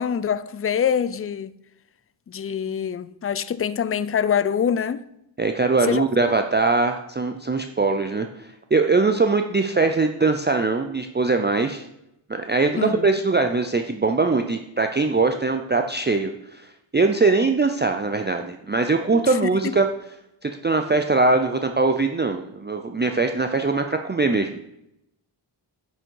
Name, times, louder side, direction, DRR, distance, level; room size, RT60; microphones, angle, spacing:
voice 1, 0.0-1.5 2.3-5.0 5.9-6.0 12.8-13.1 19.3-19.8, left 8 dB, 30° left, 0.4 m, -25 dB
voice 2, 5.4-11.8 12.3-19.9 20.4-24.6, right 3 dB, 25° right, 0.5 m, -22 dB
9.7 x 6.4 x 4.6 m
wide cardioid pair, 90°, 48 cm